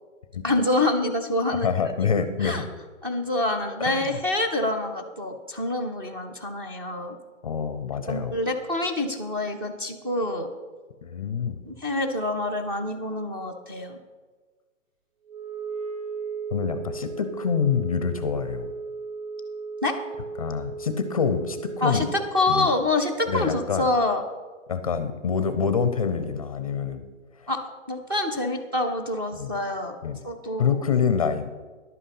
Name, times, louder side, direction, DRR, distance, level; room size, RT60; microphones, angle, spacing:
voice 1, 0.4-1.7 2.4-2.6 3.0-7.2 8.1-10.5 11.6-14.0 19.8-20.0 21.8-24.2 27.5-30.0 30.2-30.7, left 2 dB, 20° right, 5 dB, 0.5 m, -26 dB
voice 2, 1.6-2.6 3.8-4.0 7.4-8.3 11.0-11.6 16.5-18.7 20.4-22.1 22.5-22.7 23.3-23.9 24.7-27.0 29.3-29.5 30.0-30.2 30.6-31.5, left 6 dB, 30° left, 10 dB, 0.5 m, -26 dB
Wind instrument woodwind instrument, 15.3-22.4, right 4 dB, 90° right, 2.9 m, -36 dB
11.0 x 8.4 x 5.7 m, 1.4 s
hypercardioid pair, 165°, 38 cm